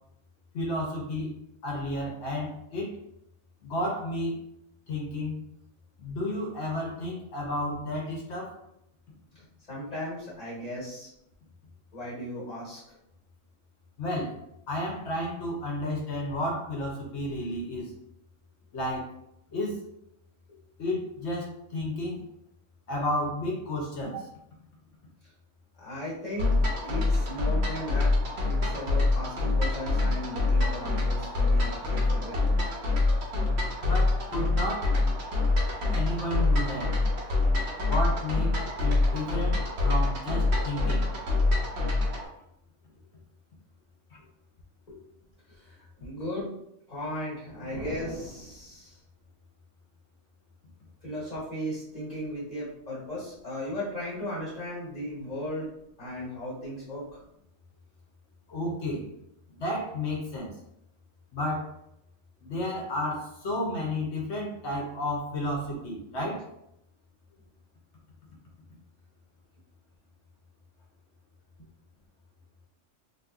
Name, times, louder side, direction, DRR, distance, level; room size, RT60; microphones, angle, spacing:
voice 1, 0.5-1.3 1.6-2.9 3.6-4.4 4.9-5.4 6.0-8.6 14.0-14.4 14.7-17.9 18.7-19.1 19.5-19.8 20.8-22.2 22.9-24.3 33.8-34.9 35.9-36.9 37.8-41.0 58.5-59.0 59.6-60.5 61.3-61.7 62.4-66.5, left 1 dB, 65° left, -2 dB, 1.0 m, -32 dB
voice 2, 9.7-11.1 11.9-12.8 25.8-26.5 26.8-28.1 28.5-32.4 44.9-45.0 45.5-45.7 46.0-46.5 46.9-49.0 51.0-55.7 56.0-57.0, equal, 35° left, -8 dB, 1.4 m, -36 dB
sound 1, 26.4-42.3, left 3 dB, 60° right, 1.0 m, -26 dB
4.0 x 2.6 x 2.4 m, 0.79 s
omnidirectional pair, 1.3 m